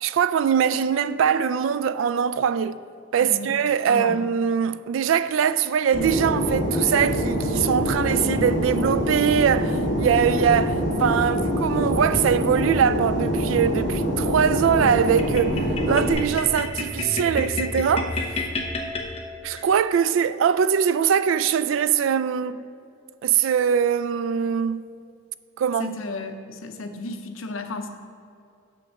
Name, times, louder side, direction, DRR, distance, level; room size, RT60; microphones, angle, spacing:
voice 1, 0.0-2.8 3.1-18.4 19.4-22.6 23.2-24.9 25.6-26.0, right 7 dB, 75° right, 0.3 m, -22 dB
voice 2, 3.2-3.6 3.9-4.2 8.2-8.4 25.8-27.9, left 3 dB, 85° left, 0.7 m, -34 dB
Fixed-wing aircraft airplane, 5.9-16.1, equal, 55° left, 1.9 m, -25 dB
sound 1, 15.2-19.7, left 2 dB, 30° left, 0.8 m, -30 dB
7.0 x 5.8 x 6.3 m
head